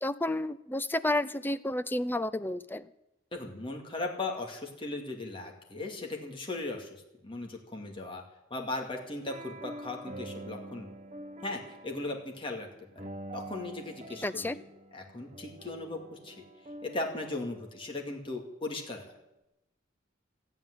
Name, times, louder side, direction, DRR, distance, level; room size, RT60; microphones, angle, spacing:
voice 1, 0.0-2.9 14.2-14.6, left 1 dB, 10° left, 13 dB, 0.5 m, -31 dB
voice 2, 3.3-8.2 8.5-10.9 11.4-12.7 12.9-13.1 13.3-14.7 14.9-16.4 16.8-19.1, left 2 dB, 25° left, 0 dB, 2.4 m, -38 dB
sound 1, 8.9-18.3, right 1 dB, 35° right, 1.2 m, -46 dB
14.0 x 9.0 x 9.7 m, 0.88 s
head